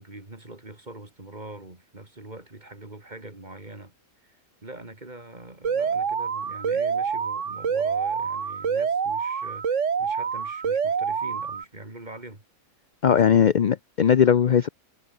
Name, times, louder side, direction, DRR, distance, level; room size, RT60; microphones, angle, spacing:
voice 1, 0.0-3.9 4.2-12.4 13.1-13.4, right 2 dB, 30° right, 3.6 m, -43 dB
Alarm, 5.6-11.6, right 6 dB, 60° right, 1.7 m, -26 dB
voice 2, 13.0-14.7, left 8 dB, 55° left, 0.5 m, -19 dB
omnidirectional pair, 1.5 m